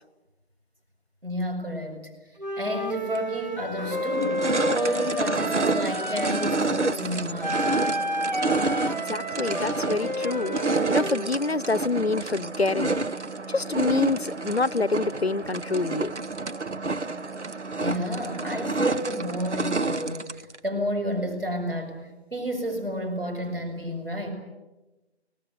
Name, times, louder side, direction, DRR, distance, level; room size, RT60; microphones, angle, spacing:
voice 1, 1.2-2.1 2.6-4.4 4.7-7.6 17.8-22.0 22.3-24.3, equal, 55° right, 5 dB, 6.8 m, -30 dB
Wind instrument woodwind instrument, 2.4-6.6 7.4-11.3, equal, 40° right, 1.0 m, -31 dB
sound 1, 3.2-3.3 3.8-20.6, right 3 dB, 85° right, 1.1 m, -29 dB
voice 2, 9.1-10.6 10.9-13.0 13.5-16.1, left 3 dB, 65° left, 20 dB, 0.8 m, -26 dB
25.0 x 18.5 x 9.3 m, 1.1 s
figure-of-eight pair, 180°, 34 cm